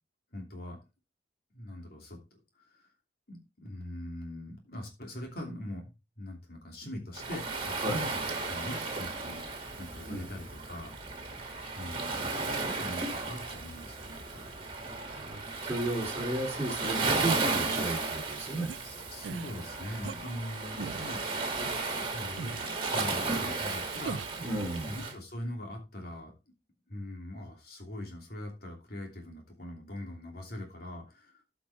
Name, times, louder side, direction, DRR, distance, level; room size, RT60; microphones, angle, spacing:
voice 1, 0.3-0.8 1.5-2.9 3.3-5.9 6.2-8.1 8.5-9.4 9.8-10.9 11.8-14.4 19.1-21.2 21.5-21.7 21.9-22.5 22.9-24.2 24.8-26.3 26.9-31.4, left 1 dB, 55° left, 1 dB, 2.8 m, -42 dB
Waves surf, 7.1-25.1, right 3 dB, 30° right, 2.4 m, -34 dB
voice 2, 15.1-18.7 24.4-24.9, right 1 dB, 15° right, -3 dB, 2.8 m, -34 dB
sound 1, 18.7-18.8 19.2-19.5 20.0-20.2 20.8-21.1 21.7-21.8 22.4-22.7 23.3-23.4 24.0-24.4, right 6 dB, 80° right, 0.4 m, -39 dB
13.5 x 6.0 x 3.5 m, 0.27 s
head